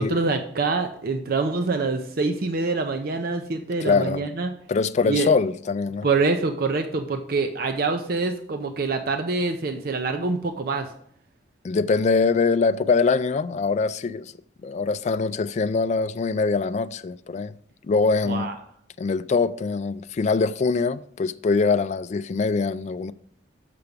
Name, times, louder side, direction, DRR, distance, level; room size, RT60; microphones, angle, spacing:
voice 1, 0.0-4.5 5.0-5.3 6.0-10.9 18.3-18.5, right 3 dB, 55° right, 0.5 m, -25 dB
voice 2, 3.8-4.2 4.7-6.1 11.6-14.3 14.6-17.5 17.8-18.5 19.0-23.1, left 4 dB, 40° left, 0.3 m, -23 dB
6.8 x 5.8 x 5.1 m
head